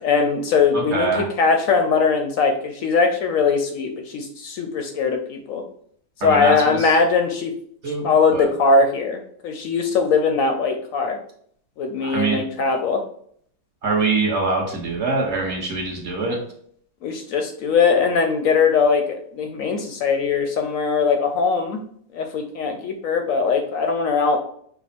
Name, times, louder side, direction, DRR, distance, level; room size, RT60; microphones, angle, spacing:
voice 1, 0.0-5.6 6.2-7.5 8.0-11.2 11.8-13.0 17.0-21.8 22.1-24.4, left 4 dB, 70° left, 5 dB, 0.8 m, -20 dB
voice 2, 0.7-1.3 6.2-6.9 7.8-8.5 12.0-12.4 13.8-16.4, right 3 dB, 45° right, -1 dB, 1.2 m, -24 dB
5.7 x 2.0 x 4.1 m, 0.62 s
omnidirectional pair, 1.9 m